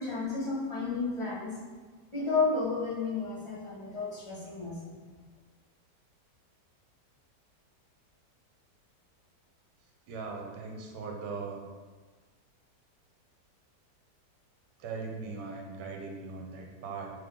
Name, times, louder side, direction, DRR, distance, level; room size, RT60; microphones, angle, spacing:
voice 1, 0.0-1.5 2.1-4.7, left 4 dB, 30° left, -8 dB, 0.5 m, -32 dB
voice 2, 10.1-11.6 14.8-17.1, right 4 dB, 75° right, 1 dB, 1.2 m, -39 dB
3.4 x 3.4 x 3.6 m, 1.4 s
omnidirectional pair, 1.9 m